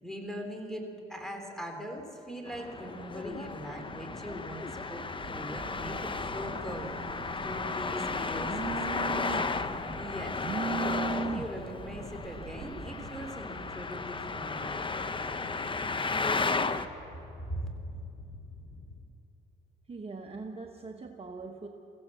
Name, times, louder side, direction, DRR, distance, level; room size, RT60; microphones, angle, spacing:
voice 1, 0.0-5.0 5.3-6.9 7.4-9.3 10.0-10.4 10.7-15.1 17.4-17.7, equal, ahead, 3 dB, 3.3 m, -41 dB
sound 1, 2.5-19.0, left 3 dB, 60° left, 2.4 m, -49 dB
Traffic noise roadway noise, 2.5-16.9, left 4 dB, 25° left, 0.9 m, -34 dB
Telephone, 5.2-13.3, right 6 dB, 50° right, 1.0 m, -40 dB
voice 2, 19.9-21.7, right 3 dB, 30° right, 3 dB, 1.2 m, -42 dB
23.0 x 15.5 x 7.6 m, 2.9 s
cardioid pair, 90°, 20 cm